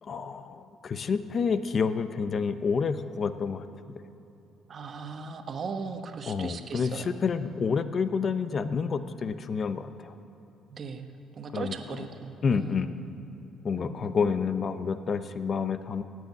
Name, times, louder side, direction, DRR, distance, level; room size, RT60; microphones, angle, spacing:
voice 1, 0.0-3.6 6.3-10.1 11.5-11.7 12.4-12.9 13.6-16.0, left 5 dB, 45° left, 11 dB, 0.8 m, -29 dB
voice 2, 4.7-7.2 10.7-12.9 13.7-14.4, right 4 dB, 45° right, 6 dB, 1.3 m, -38 dB
16.0 x 9.4 x 9.5 m, 2.9 s
cardioid pair, 90°, 0 cm